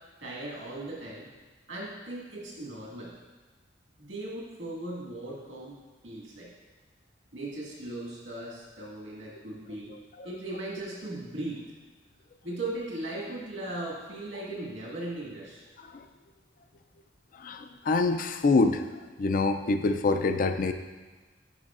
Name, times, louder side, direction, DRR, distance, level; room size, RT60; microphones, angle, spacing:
voice 1, 0.2-1.3 1.7-3.1 4.0-5.8 6.0-6.5 7.3-9.9 10.2-11.6 12.4-15.6, right 1 dB, 85° right, -4 dB, 1.9 m, -38 dB
voice 2, 17.4-18.8 19.2-20.7, left 3 dB, 45° left, 8 dB, 0.4 m, -25 dB
9.7 x 4.9 x 2.4 m, 1.3 s
head